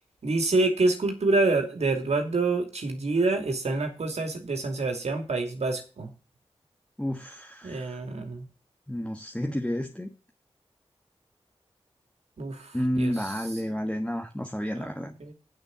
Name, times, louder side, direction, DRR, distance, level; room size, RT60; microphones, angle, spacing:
voice 1, 0.2-6.1 7.6-8.5 12.4-13.3 14.8-14.9 15.2-15.3, right 3 dB, 80° right, 4 dB, 2.7 m, -27 dB
voice 2, 7.0-8.0 8.9-10.1 12.7-15.2, equal, 10° left, 4 dB, 1.4 m, -31 dB
8.7 x 6.7 x 7.4 m, 0.33 s
cardioid pair, 45°, 11 cm